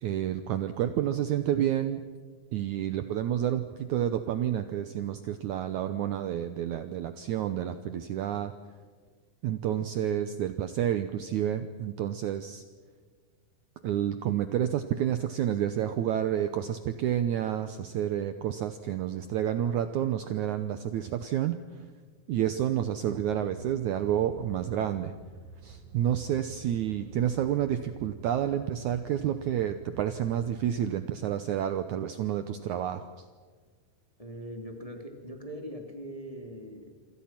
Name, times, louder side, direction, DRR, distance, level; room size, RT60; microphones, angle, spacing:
voice 1, 0.0-2.0 2.5-8.5 9.4-12.6 13.8-21.6 22.3-25.1 25.6-33.1, right 10 dB, 85° right, 9 dB, 1.7 m, -29 dB
sound 1, 23.0-30.7, right 4 dB, 45° right, 7.7 m, -49 dB
voice 2, 34.2-36.9, equal, 10° left, 3 dB, 2.4 m, -41 dB
27.5 x 26.0 x 6.0 m, 1.5 s
omnidirectional pair, 4.7 m